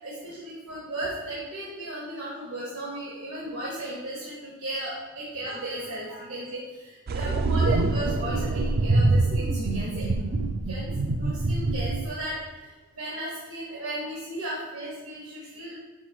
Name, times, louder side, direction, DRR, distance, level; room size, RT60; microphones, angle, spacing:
voice 1, 0.0-10.3 10.6-15.7, right 1 dB, 75° right, -6 dB, 1.6 m, -36 dB
sound 1, 7.1-12.1, right 2 dB, 40° right, 0.3 m, -25 dB
7.1 x 6.1 x 3.0 m, 1.2 s
head